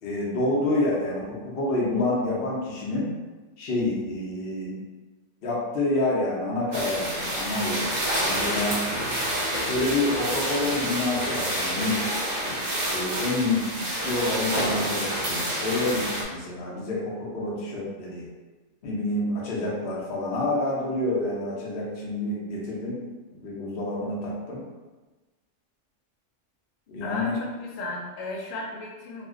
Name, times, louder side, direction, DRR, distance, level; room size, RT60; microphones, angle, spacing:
voice 1, 0.0-3.1 3.6-4.8 5.4-7.9 8.2-9.1 9.7-12.1 12.9-18.3 18.8-24.6 26.9-27.3, left 2 dB, 55° left, -4 dB, 0.9 m, -28 dB
sound 1, 6.7-16.2, equal, 55° right, 0.5 m, -28 dB
voice 2, 27.0-29.2, left 2 dB, 90° left, -2 dB, 1.0 m, -35 dB
2.5 x 2.1 x 3.6 m, 1.2 s
omnidirectional pair, 1.3 m